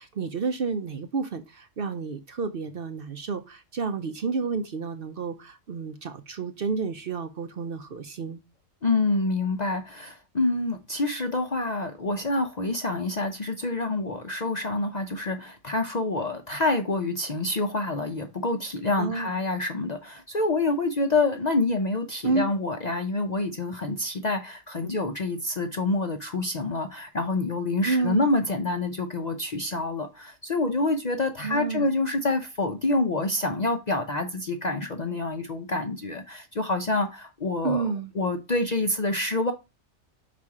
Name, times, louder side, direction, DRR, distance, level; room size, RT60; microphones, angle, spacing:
voice 1, 0.0-8.4 19.0-19.4 22.2-22.5 27.8-28.3 31.4-31.9 37.6-38.1, right 4 dB, 55° right, 0.7 m, -30 dB
voice 2, 8.8-39.5, left 2 dB, 45° left, 0.6 m, -27 dB
5.9 x 4.2 x 4.8 m
omnidirectional pair, 1.4 m